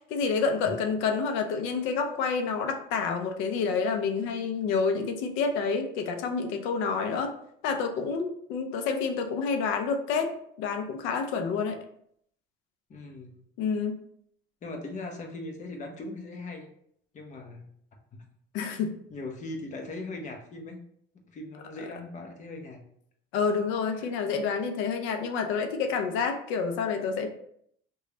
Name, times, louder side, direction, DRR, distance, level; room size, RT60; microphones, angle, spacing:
voice 1, 0.1-7.3 7.6-10.3 10.6-11.8 13.6-14.0 18.5-18.9 23.3-27.3, left 5 dB, 85° left, 5 dB, 0.6 m, -28 dB
voice 2, 12.9-13.4 14.6-16.7 17.1-17.7 18.1-18.2 19.1-20.8 21.3-22.8 23.9-24.1, left 2 dB, 40° left, 2 dB, 0.7 m, -39 dB
3.2 x 2.3 x 3.8 m, 0.69 s
cardioid pair, 105°, 20 cm